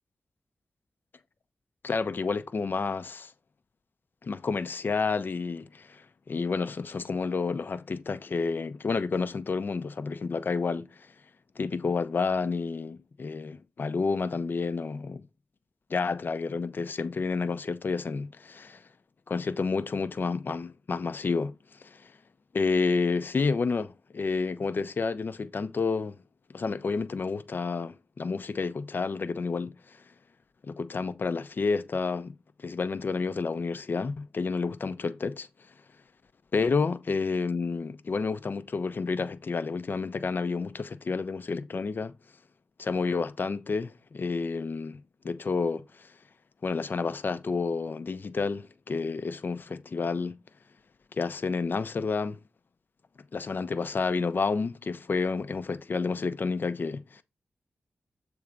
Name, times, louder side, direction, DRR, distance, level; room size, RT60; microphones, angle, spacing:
voice 1, 1.8-3.3 4.2-11.1 11.6-15.2 15.9-18.8 19.3-22.1 22.5-26.2 26.5-30.0 30.6-32.3 32.6-35.5 36.5-42.1 42.8-46.1 46.6-50.4 51.1-52.4 53.3-57.2, left 4 dB, 60° left, 0.7 m, -30 dB
7.3 x 3.5 x 5.0 m
cardioid pair, 60°, 4 cm